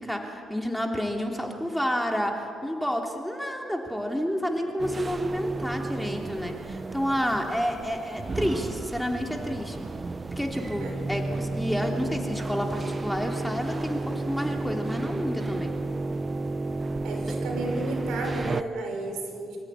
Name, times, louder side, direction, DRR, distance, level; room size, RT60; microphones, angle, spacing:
voice 1, 0.0-9.8 10.4-15.7 17.3-17.4, equal, ahead, 2 dB, 2.8 m, -30 dB
sound 1, 4.8-18.6, right 3 dB, 30° right, 0.8 m, -32 dB
voice 2, 17.0-19.6, right 2 dB, 80° right, 0 dB, 6.4 m, -33 dB
25.5 x 14.5 x 9.7 m, 2.5 s
cardioid pair, 90°, 0 cm